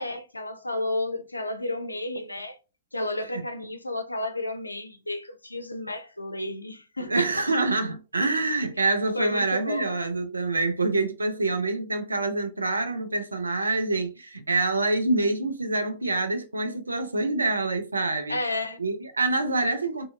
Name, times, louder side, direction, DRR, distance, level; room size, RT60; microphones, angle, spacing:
voice 1, 0.0-2.6 2.9-7.5 9.1-9.8 18.3-18.8, left 1 dB, 85° left, 0.4 m, -32 dB
voice 2, 7.1-18.4 18.8-20.0, right 2 dB, 80° right, 0.5 m, -26 dB
2.7 x 2.3 x 2.4 m
figure-of-eight pair, 105°, 0 cm